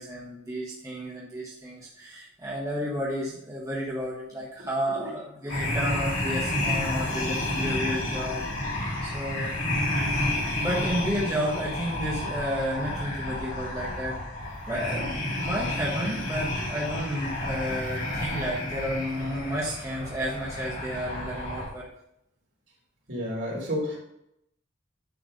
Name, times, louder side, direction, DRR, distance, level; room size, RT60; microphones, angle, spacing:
voice 1, 0.0-8.4 9.0-9.5 10.1-10.2 10.6-14.2 14.7-21.9, equal, 15° right, -5 dB, 1.3 m, -32 dB
sound 1, 5.5-21.7, left 1 dB, 70° left, 3.2 m, -30 dB
voice 2, 23.1-24.0, equal, 60° right, -4 dB, 3.5 m, -30 dB
9.4 x 4.6 x 5.1 m, 0.80 s
head